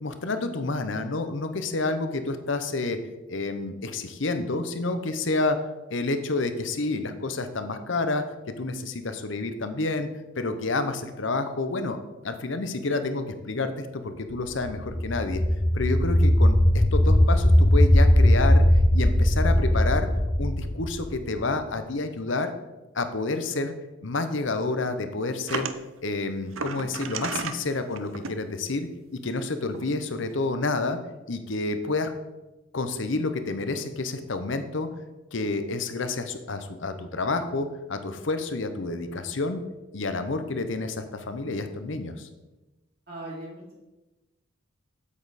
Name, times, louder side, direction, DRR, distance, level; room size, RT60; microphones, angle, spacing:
voice 1, 0.0-3.0 3.3-5.6 5.9-8.2 8.6-10.1 10.4-12.0 12.2-15.4 15.7-18.6 18.9-20.1 20.4-22.5 22.9-23.7 24.0-25.7 26.0-31.0 31.3-32.1 32.7-34.9 35.3-39.6 39.9-42.3, left 3 dB, 70° left, 9 dB, 0.8 m, -29 dB
sound 1, 14.7-21.5, left 1 dB, 15° left, 0.4 m, -19 dB
sound 2, 25.5-25.8 26.5-27.6 28.0-28.3 29.4-29.5 29.7-29.9, right 5 dB, 85° right, 0.6 m, -32 dB
voice 2, 43.1-43.8, right 1 dB, 50° right, -6 dB, 3.0 m, -39 dB
8.3 x 7.3 x 4.1 m, 1.1 s
head